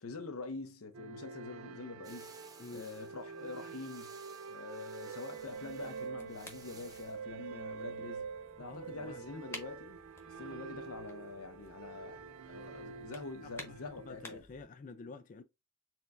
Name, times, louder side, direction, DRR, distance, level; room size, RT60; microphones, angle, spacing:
voice 1, 0.0-2.3 2.7-4.2 4.5-8.3 8.6-10.0 10.3-14.4, left 3 dB, 90° left, 0.8 m, -45 dB
sound 1, 0.9-14.4, right 5 dB, 75° right, 0.4 m, -46 dB
sound 2, 2.0-7.2, right 4 dB, 20° right, 0.6 m, -58 dB
sound 3, 5.3-14.6, left 2 dB, 10° left, 1.0 m, -54 dB
voice 2, 8.6-9.5 13.4-15.4, left 3 dB, 40° left, 0.3 m, -49 dB
4.4 x 3.4 x 2.5 m
head